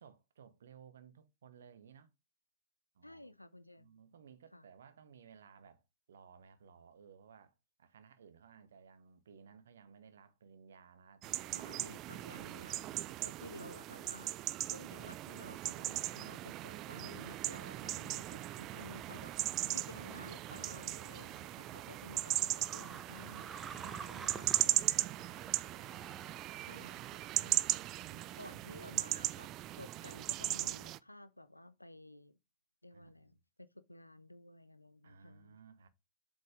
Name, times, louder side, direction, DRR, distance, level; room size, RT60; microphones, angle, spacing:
voice 1, 0.0-2.1 2.9-3.3 3.8-7.5 7.8-11.7 23.7-26.2 27.3-28.5 32.9-33.3 35.0-35.9, right 6 dB, 65° right, 1.1 m, -59 dB
voice 2, 3.0-3.9 4.5-4.7 11.5-14.3 14.6-23.7 24.4-24.7 26.6-27.7 28.1-29.5 29.7-32.4 32.8-33.4 33.7-35.6, left 1 dB, 85° left, 0.5 m, -53 dB
sound 1, 11.2-31.0, right 15 dB, 35° right, 0.4 m, -38 dB
sound 2, 18.9-26.5, right 5 dB, 20° right, 0.8 m, -51 dB
7.8 x 5.6 x 3.7 m
figure-of-eight pair, 90°, 0 cm